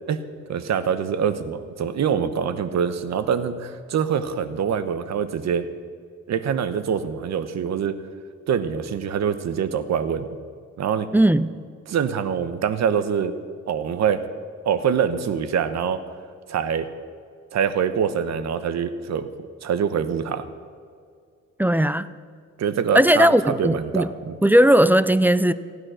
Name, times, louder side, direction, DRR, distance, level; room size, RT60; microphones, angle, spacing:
voice 1, 0.5-5.7 6.3-7.9 8.5-10.3 10.8-11.1 11.9-13.4 13.7-14.2 14.6-16.0 16.5-16.9 17.5-19.3 19.6-20.5 22.6-24.4, right 7 dB, 60° right, 12 dB, 1.1 m, -24 dB
voice 2, 11.1-11.5 21.6-22.1 22.9-24.1 24.4-25.5, right 1 dB, 5° right, 15 dB, 0.4 m, -17 dB
15.5 x 9.7 x 6.4 m, 2.1 s
cardioid pair, 90°, 30 cm